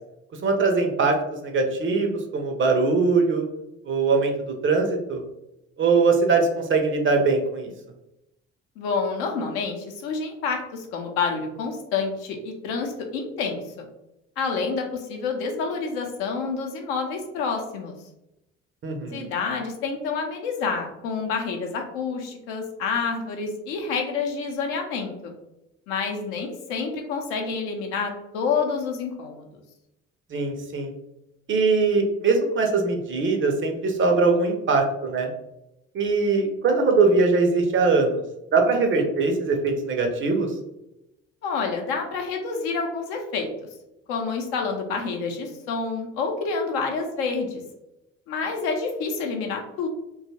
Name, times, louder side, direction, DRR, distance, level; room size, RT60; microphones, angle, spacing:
voice 1, 0.4-1.2 1.4-3.4 3.9-4.3 4.6-5.2 5.8-7.7 18.8-19.3 30.3-30.9 31.5-35.3 35.9-38.2 38.5-40.5, right 4 dB, 35° right, 4 dB, 0.6 m, -21 dB
voice 2, 8.8-13.9 14.4-17.9 19.1-25.3 25.9-29.5 41.4-43.5 44.1-47.6 48.3-49.9, left 5 dB, 65° left, 2 dB, 0.6 m, -28 dB
2.7 x 2.3 x 2.7 m, 0.89 s
figure-of-eight pair, 45°, 37 cm